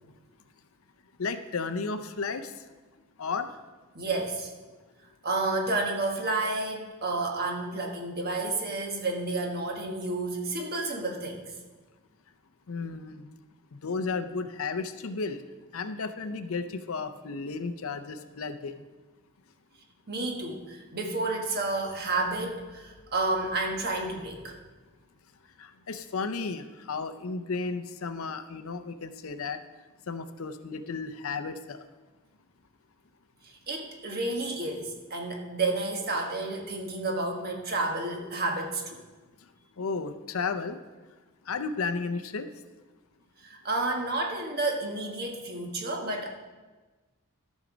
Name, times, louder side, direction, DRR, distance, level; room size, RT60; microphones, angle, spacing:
voice 1, 1.2-2.5 3.2-3.5 12.7-13.3 13.7-15.4 15.7-18.8 25.6-29.6 30.1-31.8 39.8-40.8 41.5-42.5, left 4 dB, 70° left, 10 dB, 0.6 m, -33 dB
voice 2, 3.9-4.5 5.2-11.4 20.1-24.6 33.4-39.0 43.4-46.3, right 2 dB, 45° right, 2 dB, 1.4 m, -30 dB
13.5 x 6.4 x 5.1 m, 1.3 s
head